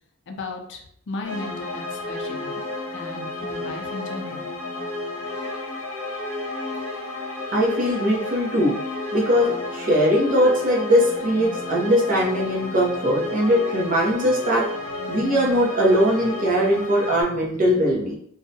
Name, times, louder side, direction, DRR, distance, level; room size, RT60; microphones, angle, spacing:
voice 1, 0.3-0.8 1.1-2.6 2.9-4.5, left 3 dB, 55° left, 2 dB, 0.5 m, -35 dB
sound 1, 1.2-17.2, left 2 dB, 75° left, 0.9 m, -32 dB
voice 2, 7.5-8.8 9.1-14.7 15.1-18.2, equal, 40° right, -3 dB, 0.7 m, -20 dB
2.6 x 2.1 x 2.7 m, 0.68 s
head